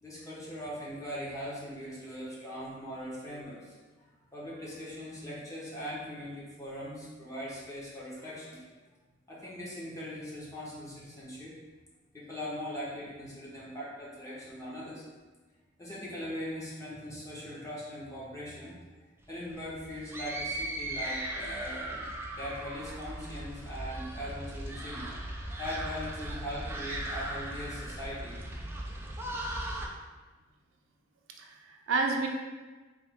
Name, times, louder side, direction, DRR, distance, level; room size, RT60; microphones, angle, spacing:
voice 1, 0.0-3.8 4.3-8.7 9.3-11.6 12.1-15.0 15.8-18.8 19.3-22.1 22.4-28.5, equal, 15° left, -7 dB, 1.0 m, -40 dB
sound 1, 19.2-29.9, right 1 dB, 10° right, 0.3 m, -38 dB
voice 2, 29.0-29.9 31.4-32.3, right 3 dB, 85° right, 1 dB, 0.5 m, -33 dB
3.4 x 2.9 x 3.5 m, 1.3 s
head